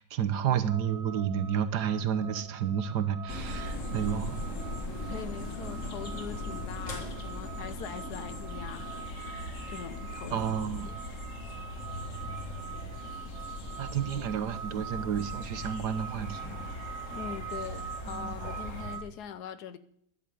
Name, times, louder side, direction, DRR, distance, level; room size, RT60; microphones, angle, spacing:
voice 1, 0.0-4.5 10.3-10.9 13.8-16.6 18.1-18.4, right 8 dB, 70° right, 1.5 m, -31 dB
sound 1, 0.7-19.0, right 7 dB, 40° right, 1.8 m, -45 dB
sound 2, 3.3-19.0, left 1 dB, 45° left, 2.2 m, -39 dB
voice 2, 5.1-10.5 10.8-11.0 17.1-19.8, left 8 dB, 70° left, 1.3 m, -42 dB
11.0 x 8.5 x 9.3 m
omnidirectional pair, 1.9 m